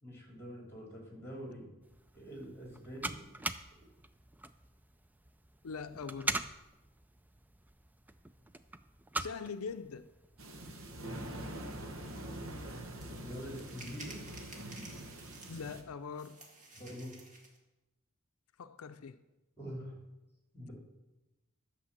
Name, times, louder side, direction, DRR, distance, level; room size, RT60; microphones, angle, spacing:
voice 1, 0.0-1.7 2.1-3.2 11.1-11.4 13.0-14.2 16.7-17.1 19.6-19.9 20.5-20.7, equal, 10° left, 3.2 m, -45 dB
sound 1, 1.8-11.0, right 2 dB, 10° right, 0.3 m, -43 dB
voice 2, 5.6-6.4 9.2-10.1 15.5-16.4 18.6-19.2, left 5 dB, 90° left, 0.5 m, -42 dB
sound 2, 10.4-15.8, right 1 dB, 70° right, 1.3 m, -44 dB
sound 3, 13.0-13.1 13.5-15.7 16.1-17.6, right 2 dB, 35° right, 2.0 m, -52 dB
11.5 x 6.7 x 7.4 m
head